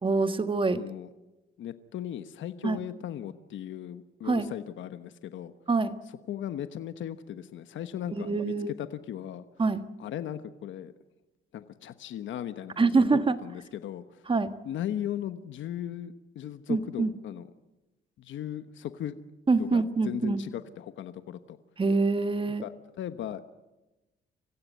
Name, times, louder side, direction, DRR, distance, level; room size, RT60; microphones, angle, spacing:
voice 1, 0.0-0.9 2.6-2.8 4.2-4.5 5.7-5.9 8.1-8.7 9.6-9.9 12.8-13.4 14.3-14.5 16.7-17.1 19.5-20.4 21.8-22.6, right 3 dB, 25° right, 10 dB, 1.5 m, -25 dB
voice 2, 0.7-1.1 1.6-5.5 6.3-9.5 10.0-10.9 11.5-14.3 14.6-17.5 18.2-19.2 19.6-21.6 22.6-23.4, left 10 dB, 75° left, 11 dB, 1.2 m, -37 dB
25.5 x 16.0 x 9.5 m, 1.0 s
cardioid pair, 90°, 20 cm